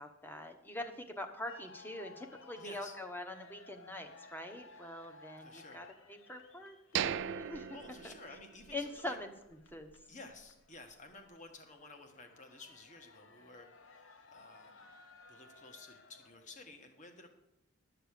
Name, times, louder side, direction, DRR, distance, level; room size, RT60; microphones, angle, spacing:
voice 1, 0.0-7.7 8.0-8.1 8.7-9.3 9.7-9.9, left 1 dB, 10° left, 5 dB, 1.0 m, -44 dB
sound 1, 1.5-16.6, left 3 dB, 70° left, 0.9 m, -59 dB
voice 2, 2.6-3.0 5.4-5.9 7.7-9.2 10.1-14.9 15.3-17.3, left 2 dB, 35° left, 5 dB, 1.5 m, -53 dB
sound 2, 7.0-8.9 9.2-9.3 9.8-10.0, right 9 dB, 60° right, 0.3 m, -38 dB
12.0 x 6.7 x 6.7 m, 0.85 s
head